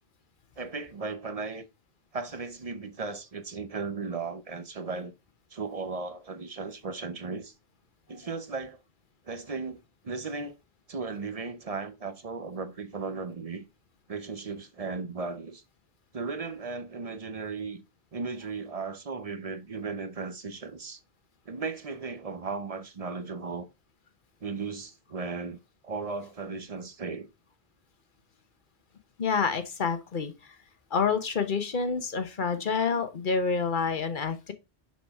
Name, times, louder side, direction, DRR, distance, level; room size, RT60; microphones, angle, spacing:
voice 1, 0.6-1.7 2.1-5.1 5.5-7.5 8.1-8.8 9.3-10.5 10.9-13.6 14.1-15.6 16.1-17.8 18.1-21.0 21.5-23.7 24.4-25.6 25.8-27.3, right 4 dB, 40° right, 0.7 m, -36 dB
voice 2, 29.2-30.5 30.9-34.5, left 5 dB, 50° left, 1.2 m, -28 dB
6.2 x 6.0 x 3.5 m
omnidirectional pair, 1.1 m